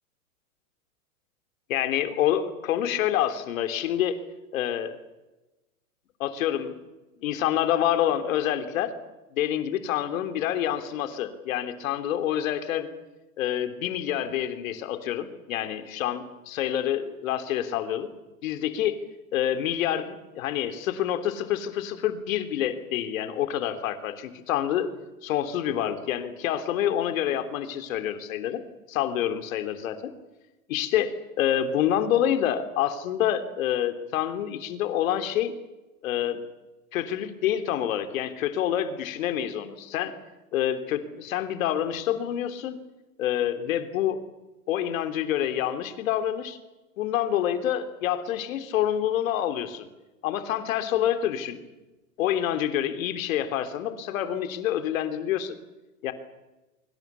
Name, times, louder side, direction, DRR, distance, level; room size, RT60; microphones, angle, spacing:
voice 1, 1.7-4.2 4.5-5.0 6.2-6.7 7.2-8.9 9.3-12.9 13.4-18.1 18.4-19.0 19.3-24.9 25.2-28.6 28.9-30.1 30.7-35.5 36.0-36.4 36.9-40.2 40.5-42.8 43.2-44.2 44.7-46.6 47.0-49.9 50.2-51.7 52.2-55.6 56.0-56.1, left 11 dB, 60° left, 9 dB, 3.4 m, -27 dB
25.0 x 25.0 x 7.0 m, 1.1 s
hypercardioid pair, 115°, 45 cm